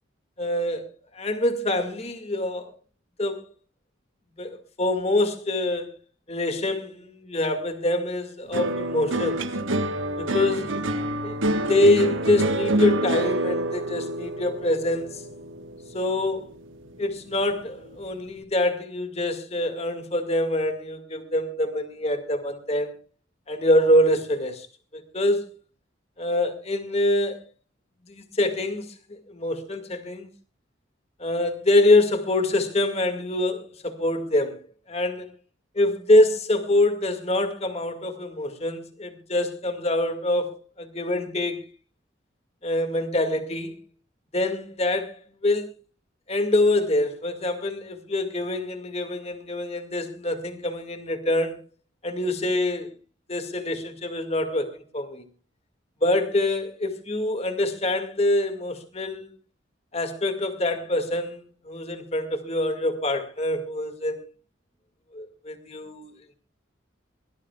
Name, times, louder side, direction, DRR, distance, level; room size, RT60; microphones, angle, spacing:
voice 1, 0.4-2.7 3.2-3.5 4.4-5.9 6.3-9.4 10.2-10.8 11.2-11.4 11.7-15.3 15.9-16.4 17.0-23.0 23.5-24.7 24.9-25.5 26.2-27.4 28.0-30.3 31.2-34.6 34.9-35.3 35.8-41.6 42.6-43.7 44.3-45.7 46.3-51.6 52.0-52.9 53.3-55.2 56.0-59.3 59.9-64.3 65.1-66.1, left 1 dB, 35° left, 2.1 m, -25 dB
sound 1, 8.5-17.0 17.3-17.9, right 1 dB, 85° right, 1.4 m, -27 dB
23.0 x 18.0 x 2.4 m
head